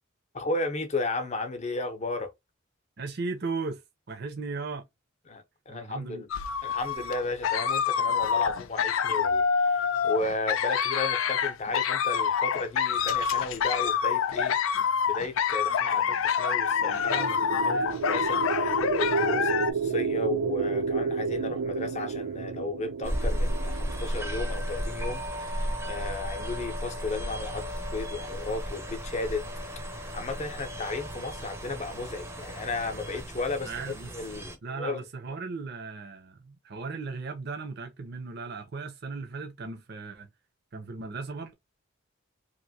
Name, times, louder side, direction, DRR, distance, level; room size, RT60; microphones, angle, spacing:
voice 1, 0.3-2.3 5.3-6.3 6.6-29.5 29.9-33.7 34.1-35.0, left 3 dB, 35° left, 0.7 m, -34 dB
voice 2, 3.0-3.8 4.1-4.8 5.7-6.2 15.9-16.2 16.8-17.9 33.6-34.1 34.6-40.3 40.7-41.5, right 4 dB, 50° right, 0.6 m, -37 dB
sound 1, 6.3-19.7, left 7 dB, 75° left, 0.4 m, -26 dB
sound 2, 16.7-24.8, right 5 dB, 90° right, 0.4 m, -31 dB
sound 3, 23.0-34.6, equal, 10° right, 0.6 m, -34 dB
2.9 x 2.6 x 2.7 m
head